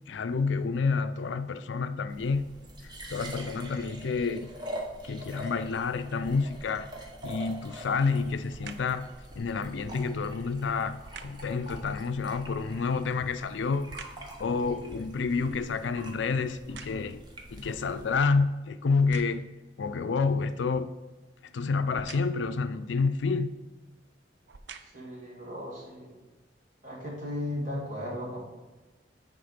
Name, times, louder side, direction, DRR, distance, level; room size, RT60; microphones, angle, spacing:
voice 1, 0.1-2.5 2.8-4.5 5.0-6.9 7.2-9.1 9.4-13.9 14.4-17.2 17.5-19.4 19.8-20.9 21.5-23.5, left 4 dB, 85° left, 0.4 m, -29 dB
sound 1, 2.1-18.3, right 1 dB, 25° right, 1.0 m, -44 dB
sound 2, 8.5-9.0 11.0-11.5 12.9-14.4 14.8-17.3 18.0-18.1 18.9-19.6 21.9-22.5 23.5-23.7 24.3-25.2 25.8-25.9, right 5 dB, 70° right, 0.5 m, -48 dB
voice 2, 24.9-26.1 26.8-28.4, left 1 dB, 45° right, 2.4 m, -36 dB
9.5 x 3.7 x 5.0 m
head